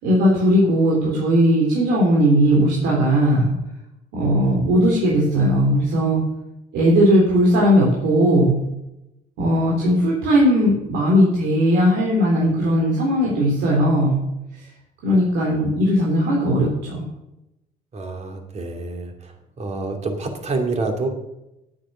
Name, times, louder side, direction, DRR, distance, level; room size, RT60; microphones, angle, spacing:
voice 1, 0.0-3.5 4.1-6.2 6.7-8.6 9.4-14.2 15.0-17.0, equal, 85° right, -3 dB, 3.6 m, -18 dB
voice 2, 17.9-21.1, right 3 dB, 40° right, 3 dB, 2.7 m, -27 dB
10.5 x 8.8 x 6.2 m, 0.90 s
cardioid pair, 110°, 17 cm